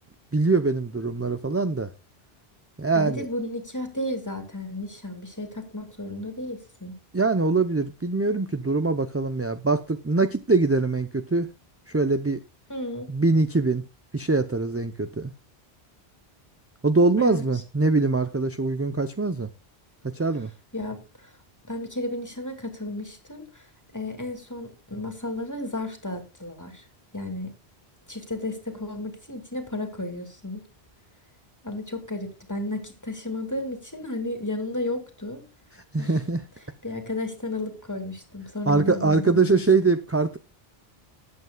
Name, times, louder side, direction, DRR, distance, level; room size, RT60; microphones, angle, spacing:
voice 1, 0.3-1.9 2.8-3.3 7.1-11.5 11.9-12.4 13.1-13.8 14.1-15.3 16.8-19.5 20.0-20.5 35.9-36.4 38.7-40.4, right 3 dB, 20° right, 0.5 m, -23 dB
voice 2, 2.9-6.9 12.7-13.1 17.2-17.4 20.7-21.3 21.6-23.7 23.9-26.9 27.1-27.5 28.1-30.7 31.6-35.4 36.0-36.1 36.8-39.4, left 1 dB, 15° left, 2.4 m, -33 dB
19.0 x 8.2 x 2.3 m
omnidirectional pair, 1.1 m